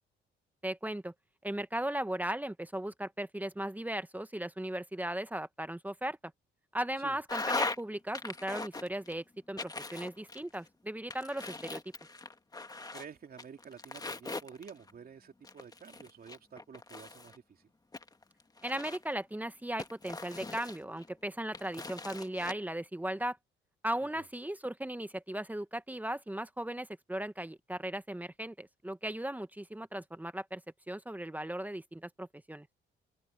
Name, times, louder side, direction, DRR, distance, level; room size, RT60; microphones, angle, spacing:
voice 1, 0.6-1.1 1.4-6.2 6.7-11.8 18.6-23.4 23.8-30.6 30.9-32.7, right 1 dB, 10° right, 1.1 m, -37 dB
sound 1, 7.3-7.8 8.1-9.1 9.6-10.7 11.1-13.1 13.4-14.9 15.4-17.4 17.9-19.2 19.8-21.1 21.5-22.5, left 3 dB, 20° left, 1.7 m, -39 dB
voice 2, 12.9-17.7 24.0-24.3, right 7 dB, 50° right, 2.9 m, -50 dB
cardioid pair, 90°, 20 cm